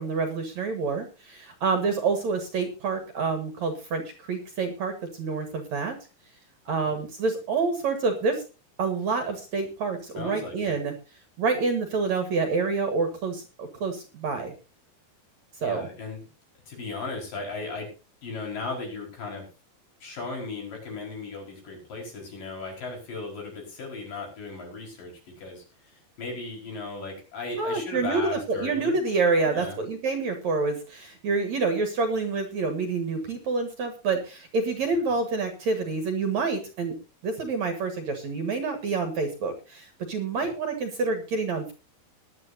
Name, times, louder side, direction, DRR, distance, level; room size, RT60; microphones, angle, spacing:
voice 1, 0.0-6.0 6.7-8.4 8.8-10.9 11.4-14.5 15.6-15.9 27.6-37.0 37.2-41.7, right 4 dB, 55° right, 7 dB, 2.4 m, -27 dB
voice 2, 10.2-10.7 15.6-16.2 16.7-17.9 18.2-19.5 20.0-28.9 29.4-29.8 40.3-40.5, left 3 dB, 60° left, 1 dB, 6.5 m, -36 dB
19.5 x 11.0 x 2.7 m, 0.32 s
omnidirectional pair, 4.5 m